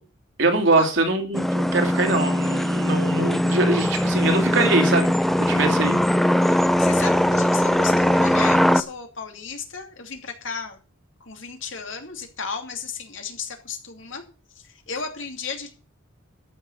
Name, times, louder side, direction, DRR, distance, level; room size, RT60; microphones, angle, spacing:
voice 1, 0.4-5.1 5.5-6.0, right 2 dB, 65° right, 4 dB, 2.8 m, -22 dB
sound 1, 1.3-8.8, left 1 dB, ahead, 0.5 m, -20 dB
voice 2, 6.8-10.8 11.2-14.2 14.5-15.7, left 5 dB, 70° left, 4 dB, 2.7 m, -34 dB
13.0 x 6.5 x 7.3 m, 0.37 s
head